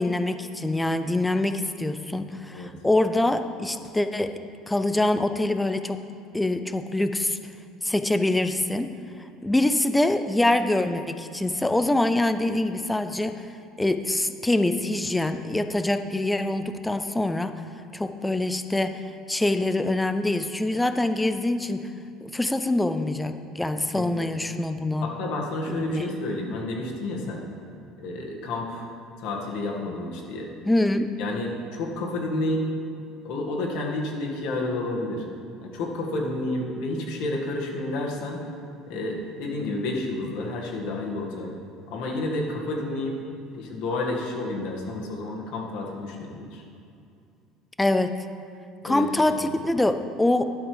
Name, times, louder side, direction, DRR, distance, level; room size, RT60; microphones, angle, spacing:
voice 1, 0.0-4.3 4.7-6.0 6.3-7.4 7.8-8.9 9.4-13.4 13.8-17.5 17.9-19.0 19.3-21.9 22.2-25.1 25.7-26.1 30.7-31.1 47.8-48.2 48.8-50.4, left 2 dB, 5° left, 9 dB, 0.4 m, -24 dB
voice 2, 23.9-24.3 25.0-27.4 28.0-28.9 29.2-30.5 31.2-32.7 33.2-35.2 35.6-38.4 38.9-41.5 41.9-43.2 43.5-46.6 48.8-49.1, left 2 dB, 65° left, -1 dB, 1.9 m, -30 dB
12.0 x 11.5 x 3.4 m, 2.5 s
cardioid pair, 155°, 0 cm